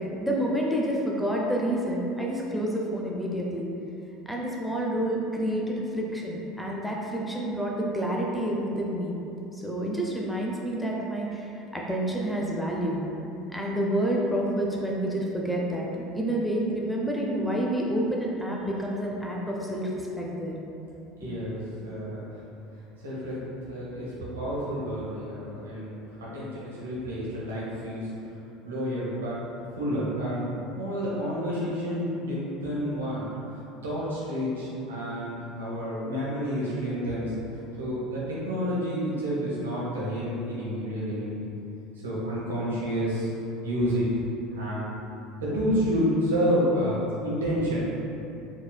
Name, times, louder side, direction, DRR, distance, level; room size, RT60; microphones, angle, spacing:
voice 1, 0.0-3.7 4.3-9.2 9.5-13.0 13.5-20.5 21.2-21.3, right 1 dB, ahead, -3 dB, 0.5 m, -29 dB
voice 2, 21.2-21.6 21.8-22.2 23.0-23.4 23.7-28.1 28.6-29.4 29.8-30.4 30.7-33.3 33.8-37.3 37.8-41.5 42.0-43.3 43.6-44.1 44.5-44.9 45.4-47.8, equal, 75° right, -7 dB, 0.9 m, -29 dB
4.6 x 3.0 x 2.2 m, 2.9 s
figure-of-eight pair, 70°, 0 cm